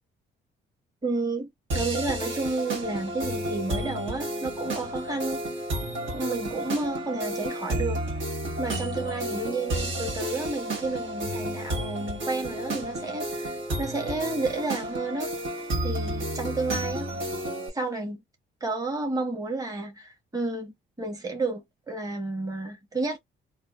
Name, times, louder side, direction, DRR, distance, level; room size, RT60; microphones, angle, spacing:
voice 1, 1.0-5.5 6.0-17.1 17.7-18.2 18.6-23.2, right 3 dB, 15° right, 1.2 m, -31 dB
sound 1, 1.7-17.7, right 1 dB, 75° right, 1.5 m, -31 dB
3.3 x 2.4 x 2.4 m
cardioid pair, 90°, 20 cm